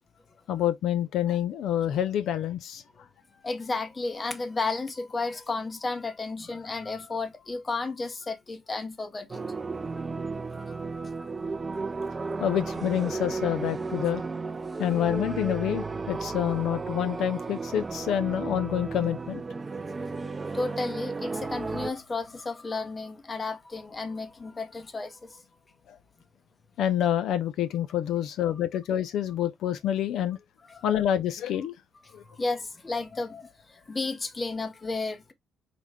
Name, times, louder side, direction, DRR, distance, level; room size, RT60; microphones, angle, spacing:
voice 1, 0.5-2.8 12.4-14.2 14.8-19.4 20.2-20.3 25.9-26.0 26.8-30.4 30.8-31.7 32.1-32.2, left 10 dB, 70° left, 0.3 m, -27 dB
voice 2, 3.3-9.4 10.5-10.8 20.4-25.4 30.7-31.0 32.1-35.3, left 3 dB, 20° left, 0.8 m, -33 dB
sound 1, 9.3-21.9, right 4 dB, 20° right, 0.3 m, -34 dB
4.9 x 2.2 x 3.5 m
cardioid pair, 125°, 0 cm